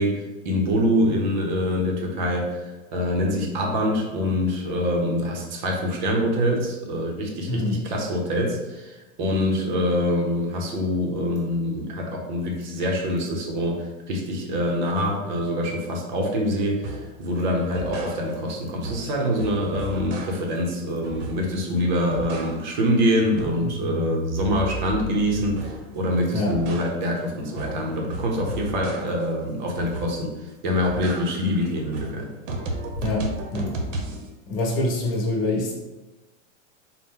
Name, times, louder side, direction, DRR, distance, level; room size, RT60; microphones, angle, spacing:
voice 1, 0.0-30.3 30.6-32.3, equal, 35° right, 1 dB, 0.6 m, -25 dB
voice 2, 7.5-7.8 26.3-26.6 32.9-33.7 34.5-35.7, left 2 dB, 45° left, -1 dB, 1.0 m, -25 dB
sound 1, 16.8-17.1 17.6-18.6 18.8-20.6 21.0-21.7 21.9-22.9 23.2-25.9 26.3-29.3 29.8-30.4 30.7-34.3, right 1 dB, 70° right, 0.8 m, -34 dB
4.1 x 2.1 x 3.6 m, 1.1 s
supercardioid pair, 170°, 39 cm